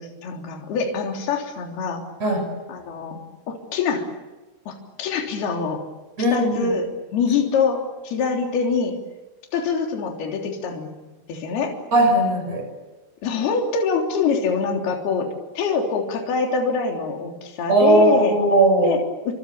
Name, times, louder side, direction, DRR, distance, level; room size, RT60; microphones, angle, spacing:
voice 1, 0.0-2.0 2.7-3.2 3.5-4.1 4.7-5.8 6.3-9.0 9.5-10.9 11.3-11.8 13.2-15.3 15.6-18.3 18.8-19.3, left 5 dB, 55° left, 1 dB, 5.1 m, -24 dB
voice 2, 6.2-6.7 11.9-12.7 17.7-19.0, right 2 dB, 30° right, 6 dB, 7.2 m, -18 dB
30.0 x 25.5 x 7.0 m, 1.2 s
omnidirectional pair, 5.7 m